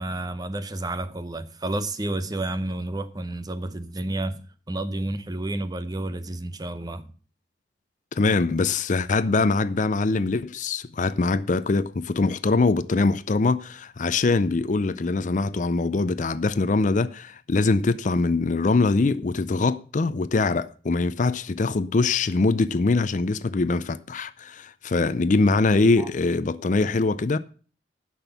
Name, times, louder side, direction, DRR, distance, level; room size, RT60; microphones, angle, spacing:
voice 1, 0.0-7.1 26.0-26.1, right 1 dB, 20° right, 0.7 m, -30 dB
voice 2, 8.2-27.4, left 3 dB, 40° left, 0.5 m, -23 dB
10.5 x 6.0 x 7.0 m
head